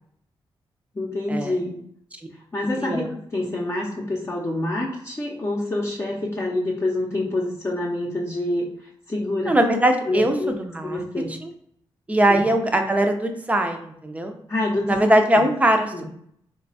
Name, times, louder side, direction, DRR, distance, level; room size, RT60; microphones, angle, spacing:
voice 1, 0.9-1.8 2.5-9.5 10.1-10.5 10.8-11.3 12.3-12.4 14.5-15.0 15.9-16.0, left 2 dB, 30° left, -4 dB, 0.7 m, -27 dB
voice 2, 9.5-11.0 11.4-11.5 12.1-14.4 14.9-16.0, right 1 dB, 15° right, 4 dB, 0.6 m, -21 dB
3.2 x 2.3 x 4.0 m, 0.68 s
cardioid pair, 75°, 10 cm